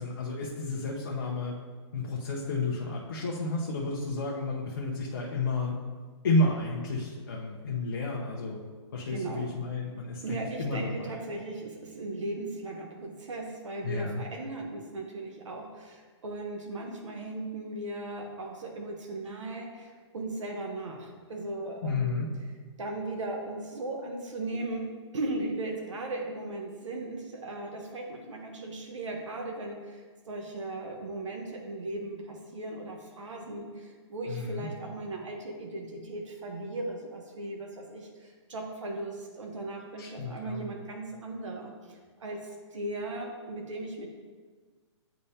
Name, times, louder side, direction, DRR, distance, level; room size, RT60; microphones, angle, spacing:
voice 1, 0.0-1.6 1.9-5.8 6.2-8.6 8.9-11.2 13.8-14.2 21.8-22.3 34.3-34.7 40.0-40.7, left 2 dB, 40° left, -3 dB, 0.8 m, -31 dB
voice 2, 9.1-9.4 10.2-22.2 22.8-44.1, right 2 dB, 85° right, 1 dB, 1.1 m, -37 dB
10.0 x 3.4 x 2.8 m, 1.5 s
hypercardioid pair, 175°, 15 cm